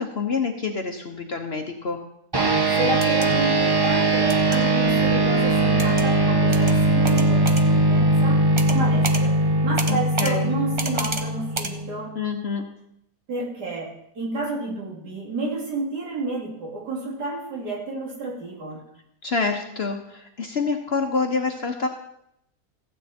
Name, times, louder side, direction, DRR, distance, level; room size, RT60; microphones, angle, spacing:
voice 1, 0.0-2.0 9.9-10.5 12.1-12.6 19.2-21.9, left 4 dB, 45° left, 4 dB, 1.0 m, -27 dB
sound 1, 2.3-12.1, right 2 dB, 15° right, 0.9 m, -20 dB
voice 2, 2.7-9.4 9.6-12.2 13.3-13.9 14.1-18.8, right 2 dB, 85° right, -2 dB, 3.1 m, -30 dB
sound 2, 2.9-3.3 4.3-4.6 5.8-6.1 6.5-6.7 7.0-7.6 8.6-8.8 9.0-9.2 9.8-10.3 10.8-11.2 11.5-11.7, right 3 dB, 35° right, 0.5 m, -30 dB
15.0 x 8.3 x 4.3 m, 0.76 s
omnidirectional pair, 1.7 m